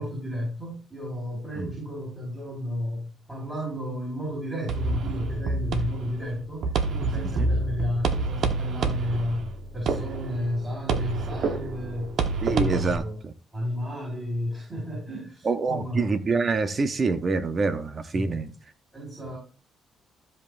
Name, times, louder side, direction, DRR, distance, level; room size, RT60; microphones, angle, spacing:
voice 1, 0.0-9.5 9.7-12.1 12.4-13.2 13.5-16.1 18.1-18.3 18.9-19.4, left 1 dB, 15° right, 5.4 m, -32 dB
sound 1, 4.7-13.0, right 3 dB, 65° right, 1.2 m, -28 dB
voice 2, 12.4-13.3 15.4-18.5, right 4 dB, 40° right, 0.8 m, -26 dB
14.5 x 5.4 x 2.6 m
cardioid pair, 90°, 0 cm